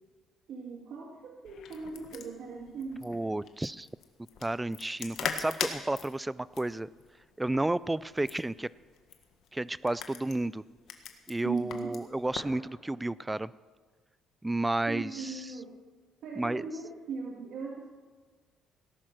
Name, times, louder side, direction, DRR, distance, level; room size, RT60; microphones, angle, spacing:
voice 1, 0.5-3.1 11.4-11.9 14.9-15.8 16.2-17.9, right 5 dB, 60° right, -1 dB, 2.2 m, -39 dB
sound 1, 1.4-12.6, left 8 dB, 65° left, 1.5 m, -42 dB
voice 2, 3.0-3.9 4.4-6.9 7.4-8.7 9.5-10.6 11.3-13.5 14.4-15.3 16.4-16.6, right 2 dB, 10° right, 19 dB, 0.4 m, -31 dB
18.0 x 11.0 x 6.1 m, 1.4 s
cardioid pair, 130°, 0 cm